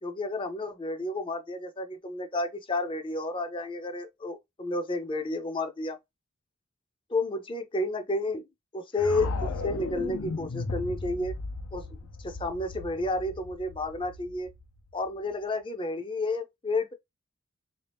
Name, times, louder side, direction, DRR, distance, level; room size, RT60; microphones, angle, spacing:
voice 1, 0.0-6.0 7.1-8.4 8.7-11.3 11.7-14.5 14.9-16.9, left 2 dB, 25° left, 0.5 m, -31 dB
sound 1, 9.0-15.1, left 3 dB, 80° left, 0.5 m, -36 dB
3.3 x 2.7 x 3.3 m
head